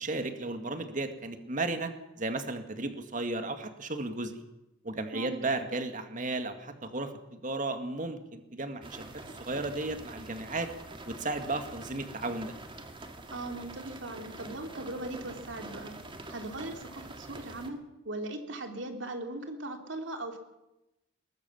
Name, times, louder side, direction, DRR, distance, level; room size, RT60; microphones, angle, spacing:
voice 1, 0.0-1.9 2.2-4.3 4.8-10.7 11.1-12.6, right 2 dB, 40° right, 7 dB, 2.0 m, -34 dB
sound 1, 8.8-17.7, right 2 dB, 25° right, 2.1 m, -46 dB
voice 2, 13.3-15.9 16.3-20.4, right 2 dB, 70° right, 5 dB, 3.1 m, -39 dB
22.0 x 20.0 x 7.2 m, 0.95 s
head